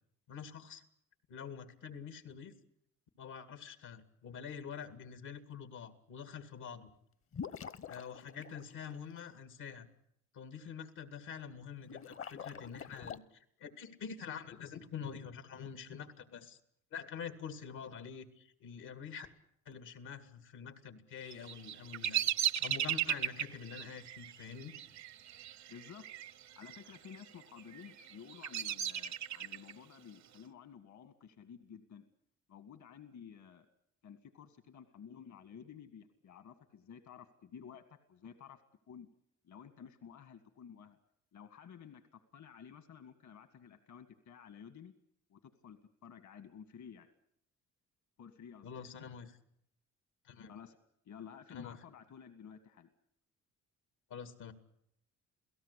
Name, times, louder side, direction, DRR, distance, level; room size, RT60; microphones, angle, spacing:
voice 1, 0.3-0.8 1.3-2.5 3.2-6.9 7.9-9.9 10.3-16.6 16.9-19.3 19.7-24.7 48.6-49.4 50.2-50.5 51.5-51.7 54.1-54.5, left 7 dB, 85° left, 10 dB, 2.3 m, -46 dB
sound 1, 7.3-9.2 11.8-13.2, left 7 dB, 45° left, 0.9 m, -46 dB
Bird vocalization bird call bird song, 21.3-26.3 26.6-27.2 27.7-29.7, right 11 dB, 65° right, 0.9 m, -36 dB
voice 2, 25.7-26.1 26.6-32.0 32.5-33.7 34.0-38.6 38.9-39.1 39.4-41.0 41.3-44.9 45.3-47.1 48.2-48.9 50.5-50.8 51.1-52.9, left 7 dB, 70° left, 9 dB, 2.0 m, -53 dB
28.5 x 17.5 x 8.4 m, 0.72 s
cardioid pair, 90°, 30 cm